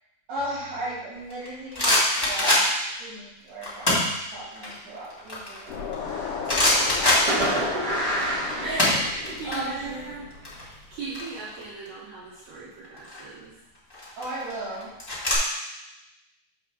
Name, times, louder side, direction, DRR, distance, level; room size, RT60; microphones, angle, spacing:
voice 1, 0.3-2.0 2.3-2.6 3.0-4.0 4.3-5.7 8.5-9.0 9.4-10.1 14.2-14.9, right 1 dB, 80° right, -10 dB, 3.7 m, -35 dB
sound 1, 1.3-3.0 3.6-4.2 4.5-6.1 6.5-7.9 8.1-9.6 9.8-10.0 10.3-11.9 12.8-13.2 13.9-15.3, left 1 dB, 20° left, 0.7 m, -24 dB
sound 2, 5.7-11.0, left 6 dB, 70° left, 1.6 m, -36 dB
Fireworks, 5.7-6.7 7.3-9.5, right 1 dB, 35° right, 2.4 m, -29 dB
voice 2, 8.6-13.5, right 3 dB, 55° right, -11 dB, 3.9 m, -38 dB
7.2 x 3.3 x 5.9 m, 0.91 s
omnidirectional pair, 3.3 m